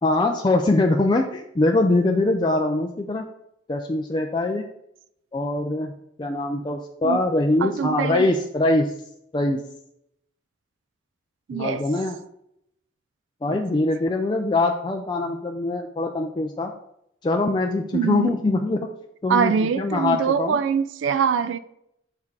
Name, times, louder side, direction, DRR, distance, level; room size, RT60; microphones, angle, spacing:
voice 1, 0.0-3.3 3.7-4.6 5.3-5.9 6.2-8.9 9.3-9.6 11.5-12.2 13.4-16.7 17.2-18.9 19.2-20.6, left 2 dB, 25° left, 0.4 m, -23 dB
voice 2, 7.6-8.3 11.5-11.8 13.5-13.6 17.9-18.3 19.3-21.6, right 7 dB, 85° right, 0.3 m, -23 dB
6.6 x 3.6 x 4.6 m
head